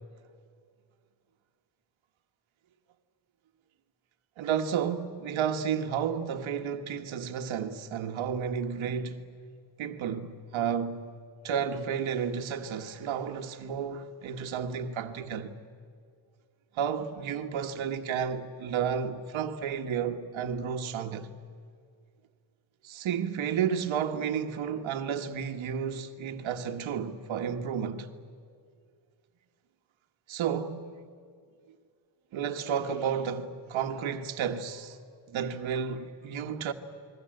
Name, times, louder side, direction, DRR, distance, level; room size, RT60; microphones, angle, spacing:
voice 1, 4.4-9.2 9.8-11.1 11.4-15.5 16.7-21.3 22.8-28.1 30.3-31.0 32.3-35.0 35.3-36.7, right 7 dB, 85° right, 1.6 m, -32 dB
29.5 x 21.5 x 7.9 m
wide cardioid pair, 165°, 46 cm